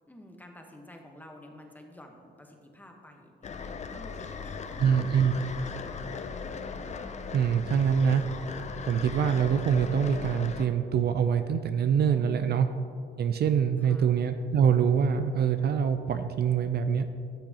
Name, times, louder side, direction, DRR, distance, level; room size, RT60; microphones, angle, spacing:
voice 1, 0.1-6.6 12.1-12.6 13.8-14.1, left 1 dB, 10° left, 2 dB, 1.1 m, -50 dB
sound 1, 3.4-10.6, left 5 dB, 35° left, 0.5 m, -38 dB
voice 2, 4.8-5.3 7.3-8.2 8.9-12.7 13.2-17.1, right 7 dB, 55° right, 9 dB, 0.4 m, -24 dB
13.0 x 6.4 x 2.9 m, 2.4 s
cardioid pair, 90°, 20 cm